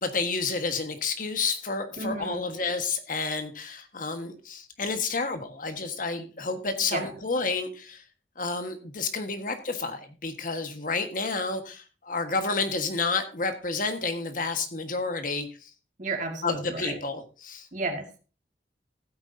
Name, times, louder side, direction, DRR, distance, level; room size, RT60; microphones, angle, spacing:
voice 1, 0.0-8.0 8.4-15.5 16.4-17.7, left 4 dB, 50° left, 7 dB, 1.5 m, -30 dB
voice 2, 2.0-2.4 6.9-7.2 16.0-17.0 17.7-18.1, right 3 dB, 45° right, 5 dB, 2.1 m, -32 dB
15.5 x 9.0 x 2.7 m, 0.34 s
head